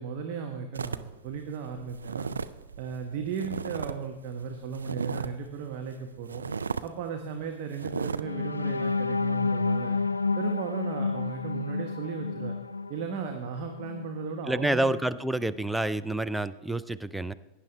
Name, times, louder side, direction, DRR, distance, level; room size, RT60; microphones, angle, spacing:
voice 1, 0.0-2.3 2.8-6.4 6.8-10.0 10.4-12.5 12.9-14.9, right 6 dB, 45° right, 4 dB, 1.1 m, -36 dB
sound 1, 0.7-4.0 4.2-5.5 5.9-6.0 6.3-6.9 7.3-7.4 7.7-8.2, right 5 dB, 75° right, 0.4 m, -35 dB
sound 2, 8.2-14.2 14.7-14.8 15.2-15.4, left 4 dB, 80° left, 0.3 m, -30 dB
voice 2, 14.5-17.3, right 1 dB, 5° right, 13 dB, 0.4 m, -28 dB
17.5 x 9.8 x 3.3 m, 1.1 s
figure-of-eight pair, 90°, 0 cm